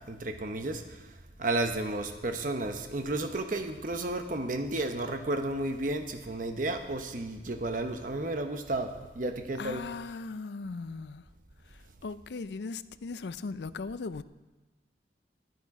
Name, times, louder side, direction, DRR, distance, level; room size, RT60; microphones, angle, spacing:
voice 1, 0.1-1.0 1.4-9.8, right 2 dB, 45° right, 0.9 m, -32 dB
voice 2, 9.6-11.2 11.7-14.2, left 4 dB, 70° left, 0.5 m, -38 dB
13.0 x 11.0 x 4.8 m
head